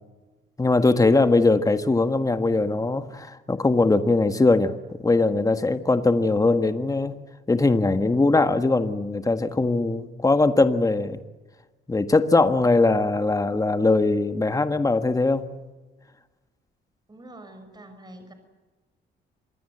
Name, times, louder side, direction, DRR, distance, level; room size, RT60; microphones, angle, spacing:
voice 1, 0.6-4.7 5.0-11.2 11.9-15.6, left 3 dB, 15° left, 9 dB, 1.6 m, -21 dB
voice 2, 17.1-18.3, right 1 dB, 20° right, 7 dB, 5.9 m, -45 dB
27.0 x 21.5 x 8.0 m, 1.2 s
cardioid pair, 90°, 20 cm